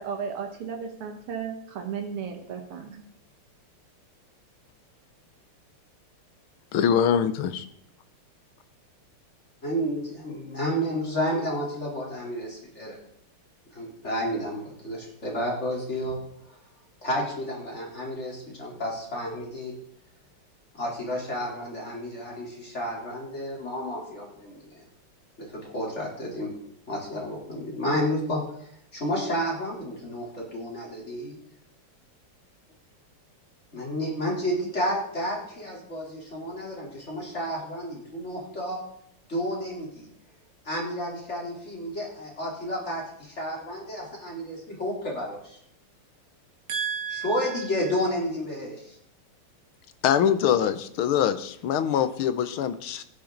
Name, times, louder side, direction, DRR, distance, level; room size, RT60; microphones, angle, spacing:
voice 1, 0.0-3.0 46.7-48.0, right 7 dB, 80° right, 3 dB, 2.3 m, -34 dB
voice 2, 6.7-7.6 50.0-53.0, left 9 dB, 75° left, 12 dB, 1.6 m, -23 dB
voice 3, 9.6-13.0 13.7-16.2 16.5-16.6 17.0-19.7 20.7-24.6 25.4-26.5 26.9-31.4 33.7-38.8 39.3-40.1 40.7-45.6 47.2-49.0, equal, 30° left, -2 dB, 3.8 m, -31 dB
15.5 x 10.5 x 3.9 m, 0.71 s
omnidirectional pair, 2.4 m